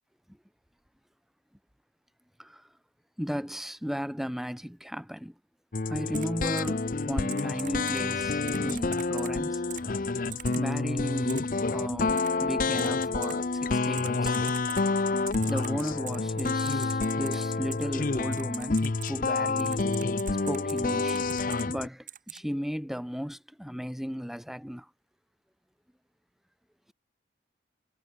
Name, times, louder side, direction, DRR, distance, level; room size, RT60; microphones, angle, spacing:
voice 1, 3.2-5.3 5.9-9.6 10.5-14.3 15.5-19.9 20.4-21.3 21.7-24.9, equal, ahead, 1.0 m, -35 dB
sound 1, 5.7-21.9, left 3 dB, 45° left, 0.6 m, -28 dB
Typing, 6.1-6.3 6.6-6.7 7.3-8.0 8.5-9.3 9.7-9.8 10.3-10.6 11.3-11.4 12.2-12.3 12.8-12.9 13.2-13.3 14.0-14.8 15.3-17.4 17.7-17.8 18.3-19.1 19.6-20.8 21.1-21.6 22.1-22.4, right 12 dB, 45° right, 3.8 m, -41 dB
head